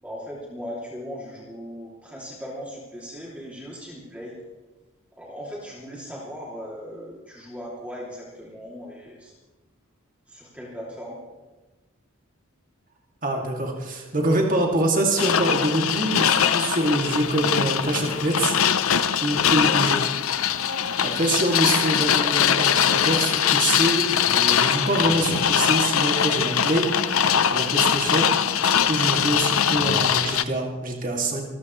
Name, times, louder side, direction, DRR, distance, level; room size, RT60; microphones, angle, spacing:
voice 1, 0.0-4.4 5.2-9.3 10.3-11.2 19.7-20.2 22.0-22.3 28.5-28.7, equal, 5° right, -5 dB, 2.7 m, -38 dB
voice 2, 13.2-18.5 18.9-20.0 20.4-20.5 21.0-31.4, right 1 dB, 40° right, 0 dB, 2.4 m, -25 dB
sound 1, 15.2-30.4, left 8 dB, 85° left, 0.7 m, -22 dB
27.0 x 14.0 x 3.2 m, 1.2 s
head